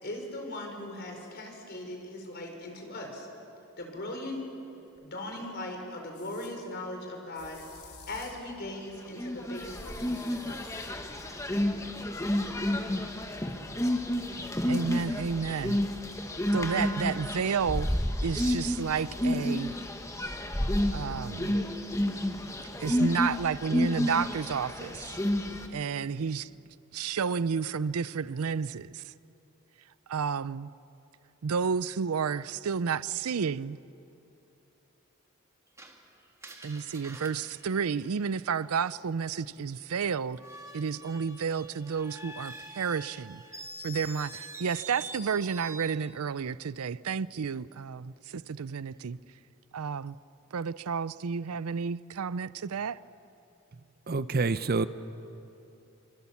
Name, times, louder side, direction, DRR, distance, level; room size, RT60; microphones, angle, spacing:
voice 1, 0.0-3.3 3.8-4.4 5.0-7.6 8.1-10.8, left 1 dB, 50° left, 4.9 m, -39 dB
sound 1, 4.9-5.0 6.1-6.5 7.3-8.5 9.5-10.9, left 5 dB, 90° left, 4.3 m, -52 dB
sound 2, 9.2-25.7, left 1 dB, 15° left, 1.4 m, -30 dB
voice 2, 14.7-15.8 16.5-17.9 18.2-19.7 20.9-21.6 22.8-25.2 25.7-26.5 26.9-29.1 30.1-30.7 31.4-33.8 36.6-40.4 40.7-43.4 43.8-49.2 49.7-50.2 50.5-53.0, right 6 dB, 85° right, 0.5 m, -31 dB
Screech, 35.8-38.7 40.3-46.0, right 1 dB, 15° right, 1.8 m, -46 dB
voice 3, 54.1-54.9, right 3 dB, 45° right, 0.6 m, -27 dB
26.5 x 25.0 x 7.2 m
head